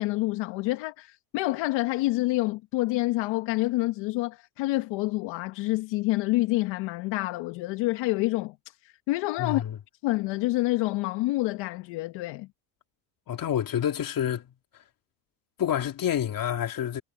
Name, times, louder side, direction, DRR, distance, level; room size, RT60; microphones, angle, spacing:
voice 1, 0.0-9.6 10.0-12.5, left 19 dB, 85° left, 1.4 m, -28 dB
voice 2, 9.4-9.8 13.3-14.8 15.6-17.0, left 10 dB, 50° left, 3.1 m, -28 dB
cardioid pair, 100°, 42 cm